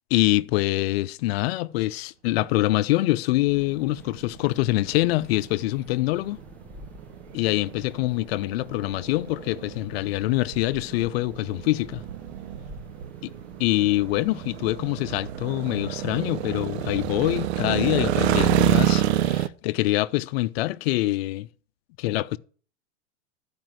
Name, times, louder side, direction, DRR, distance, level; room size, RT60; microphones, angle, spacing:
voice 1, 0.1-6.4 7.3-12.0 13.6-21.5 22.0-22.4, left 18 dB, 60° left, 0.7 m, -25 dB
sound 1, 3.4-19.5, right 13 dB, 70° right, 0.8 m, -29 dB
sound 2, 3.5-18.8, left 3 dB, 5° left, 0.8 m, -50 dB
12.0 x 5.2 x 7.7 m
hypercardioid pair, 115°, 34 cm